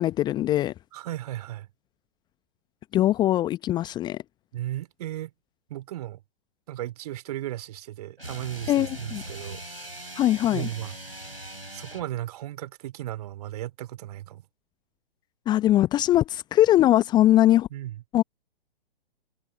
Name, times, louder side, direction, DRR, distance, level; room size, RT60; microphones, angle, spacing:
voice 1, 0.0-0.7 2.9-4.2 8.7-9.2 10.2-10.7 15.5-17.7 18.1-18.2, left 13 dB, 15° left, 0.9 m, -21 dB
voice 2, 0.9-1.7 4.5-5.3 5.7-6.2 6.7-9.6 10.5-11.0 11.7-14.4 17.7-18.0, right 14 dB, 40° right, 2.9 m, -35 dB
sound 1, 8.2-12.2, right 1 dB, 85° right, 5.5 m, -40 dB
figure-of-eight pair, 120°, 29 cm